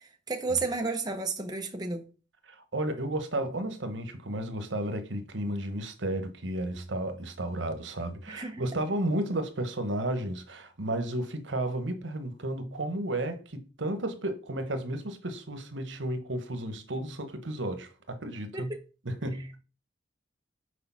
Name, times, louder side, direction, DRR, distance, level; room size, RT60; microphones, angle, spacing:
voice 1, 0.0-2.1 8.3-8.6 18.5-18.8, right 3 dB, 20° right, 1.0 m, -32 dB
voice 2, 2.5-18.7 19.0-19.6, right 1 dB, 85° right, 1.2 m, -33 dB
6.7 x 4.7 x 5.7 m
head